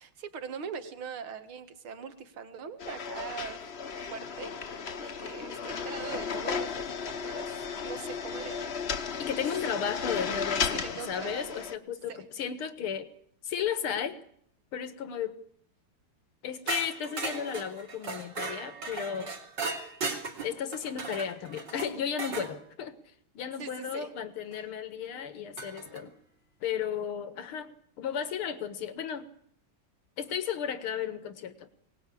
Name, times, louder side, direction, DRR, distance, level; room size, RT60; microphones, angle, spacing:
voice 1, 0.0-3.6 3.9-8.8 10.7-11.7 12.1-12.2 23.6-24.1, right 6 dB, 75° right, 9 dB, 2.5 m, -42 dB
sound 1, 2.8-11.8, left 6 dB, 40° left, 1.0 m, -35 dB
voice 2, 9.2-13.1 13.4-14.2 14.7-15.4 16.4-19.4 20.4-23.0 23.3-26.1 26.6-29.3 30.2-31.7, left 8 dB, 85° left, 11 dB, 2.4 m, -34 dB
sound 2, 16.7-22.5 24.5-24.6 25.6-26.0, right 3 dB, 55° right, 3.4 m, -37 dB
22.5 x 19.0 x 8.5 m, 0.65 s
omnidirectional pair, 2.3 m